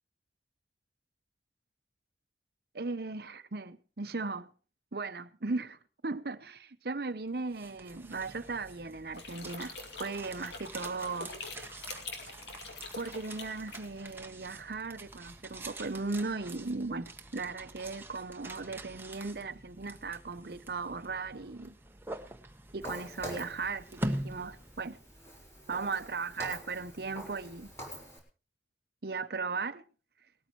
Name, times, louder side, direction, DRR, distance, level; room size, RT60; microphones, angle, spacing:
voice 1, 2.7-4.5 4.9-5.8 6.0-9.7 10.0-11.3 13.0-21.8 22.7-25.0 25.7-27.7 29.0-29.8, right 3 dB, 60° right, 0.8 m, -37 dB
sound 1, 7.3-25.3, right 1 dB, 10° right, 1.0 m, -45 dB
sound 2, 9.1-14.1, left 3 dB, 75° left, 2.7 m, -44 dB
Walk footsteps, 22.8-28.2, equal, 15° left, 4.0 m, -46 dB
19.0 x 13.5 x 3.1 m
head